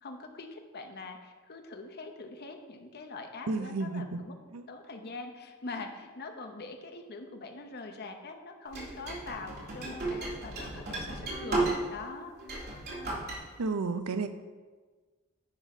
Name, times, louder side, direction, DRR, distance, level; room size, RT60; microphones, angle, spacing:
voice 1, 0.0-4.3 4.7-11.6 11.9-12.3, left 3 dB, 50° left, 5 dB, 0.9 m, -43 dB
voice 2, 3.5-4.2 4.5-4.7 13.6-14.3, right 3 dB, 85° right, 10 dB, 0.6 m, -32 dB
sound 1, 8.7-12.1 12.4-13.4, right 2 dB, 45° right, 2.3 m, -34 dB
9.8 x 4.2 x 4.9 m, 1.4 s
head